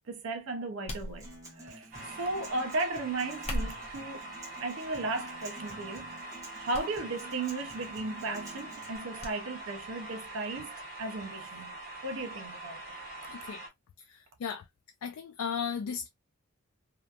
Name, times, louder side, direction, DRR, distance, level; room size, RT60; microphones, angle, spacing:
voice 1, 0.1-4.2 4.6-11.7 12.0-12.8, right 2 dB, 60° right, 0.4 m, -36 dB
sound 1, 0.9-1.7 3.3-4.0 4.8-5.2 5.6-5.7 6.7-6.9 7.2-7.3 9.2-9.4 9.7-9.8, equal, 30° left, 0.7 m, -37 dB
Acoustic guitar, 1.0-9.0, right 1 dB, 15° right, 1.0 m, -50 dB
sound 2, 1.9-13.7, right 2 dB, 40° right, 1.1 m, -44 dB
voice 2, 13.3-13.6 14.1-14.6 15.0-16.1, left 6 dB, 75° left, 0.3 m, -35 dB
2.7 x 2.3 x 2.2 m
head